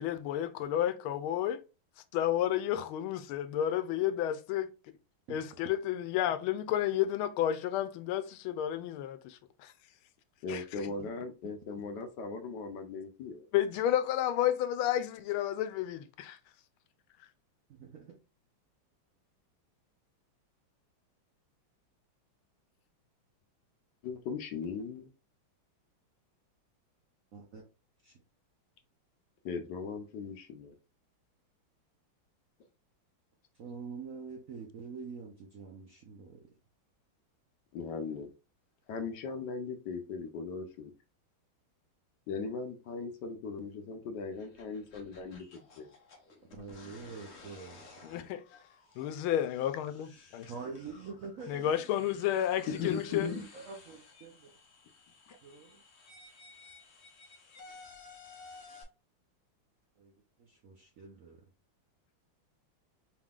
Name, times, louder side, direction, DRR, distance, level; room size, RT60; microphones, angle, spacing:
voice 1, 0.0-1.6 2.1-4.7 5.3-9.7 10.5-10.6 13.5-16.4 48.0-48.4 49.0-50.5 51.5-53.3, left 11 dB, 85° left, 1.4 m, -31 dB
voice 2, 10.4-13.5 24.0-25.1 29.4-30.7 37.7-38.3 38.9-40.9 42.3-45.9 52.7-53.5 55.3-55.4, left 5 dB, 70° left, 1.2 m, -38 dB
voice 3, 17.7-18.2 27.3-27.6 28.0-28.2 33.5-36.5 46.5-47.8 48.1-48.2 50.5-51.9 52.5-54.5 55.4-55.8 60.0-60.1 60.4-61.5, right 5 dB, 65° right, 0.8 m, -46 dB
sound 1, 44.3-58.8, left 3 dB, 55° left, 0.8 m, -55 dB
4.7 x 3.6 x 2.4 m
omnidirectional pair, 2.2 m